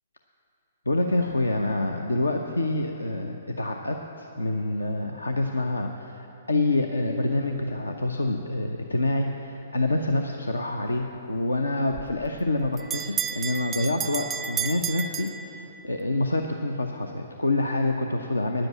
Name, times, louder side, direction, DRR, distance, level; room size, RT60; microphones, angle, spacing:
voice 1, 0.9-18.7, left 2 dB, 80° left, 4 dB, 0.6 m, -27 dB
Bell, 11.9-16.0, right 8 dB, 15° right, 0.3 m, -32 dB
10.0 x 7.8 x 8.4 m, 2.9 s
figure-of-eight pair, 120°, 0 cm